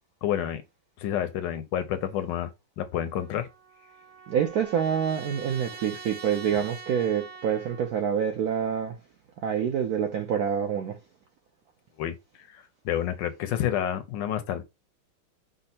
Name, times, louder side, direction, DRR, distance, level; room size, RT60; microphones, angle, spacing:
voice 1, 0.2-0.6 1.0-2.5 2.8-3.5 12.0-14.6, left 10 dB, 75° left, 1.1 m, -29 dB
Trumpet, 3.2-7.9, right 4 dB, 55° right, 1.2 m, -44 dB
voice 2, 4.3-9.0 9.4-11.0, right 8 dB, 75° right, 0.8 m, -27 dB
5.3 x 2.0 x 4.1 m
omnidirectional pair, 2.2 m